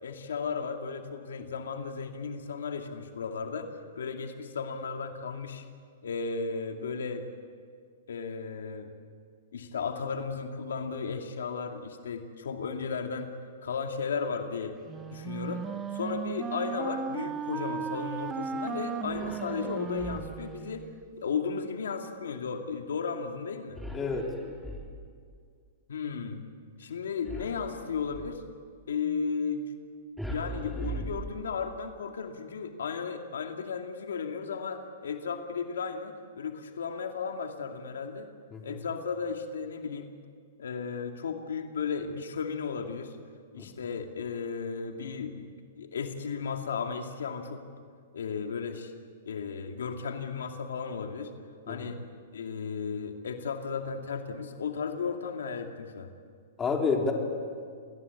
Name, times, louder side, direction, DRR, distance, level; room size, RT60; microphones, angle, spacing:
voice 1, 0.0-5.6 6.0-7.3 8.1-8.9 9.5-13.3 13.6-14.7 15.1-15.7 15.9-20.8 21.2-23.8 25.9-26.4 26.8-28.4 28.9-29.6 30.3-38.3 38.6-40.1 40.6-43.2 43.5-47.6 48.1-48.9 49.3-51.3 51.7-52.0 52.3-56.1, left 5 dB, 85° left, 4 dB, 2.4 m, -35 dB
Wind instrument woodwind instrument, 14.9-21.0, right 6 dB, 20° right, 1.2 m, -36 dB
sound 1, 19.1-20.6 23.7-25.3 27.2-28.5 30.2-31.9, right 1 dB, ahead, 3.5 m, -40 dB
voice 2, 23.9-24.3 38.5-38.8 43.6-43.7 51.7-51.9 56.6-57.1, left 4 dB, 15° left, 1 dB, 3.9 m, -29 dB
29.0 x 21.5 x 8.4 m, 2.1 s
hypercardioid pair, 140°, 0 cm